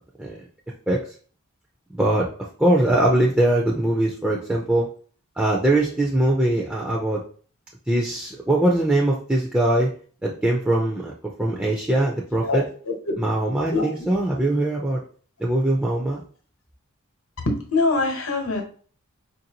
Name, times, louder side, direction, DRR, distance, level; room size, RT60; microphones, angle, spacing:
voice 1, 1.9-2.3 2.6-4.9 5.4-7.2 7.9-9.9 10.2-11.1 11.4-12.6 13.2-15.0 15.4-16.2, right 1 dB, 5° right, -3 dB, 0.4 m, -21 dB
voice 2, 12.5-13.1 13.7-13.9 17.5-18.6, left 3 dB, 70° left, 3 dB, 1.0 m, -23 dB
4.6 x 2.6 x 2.8 m, 0.43 s
head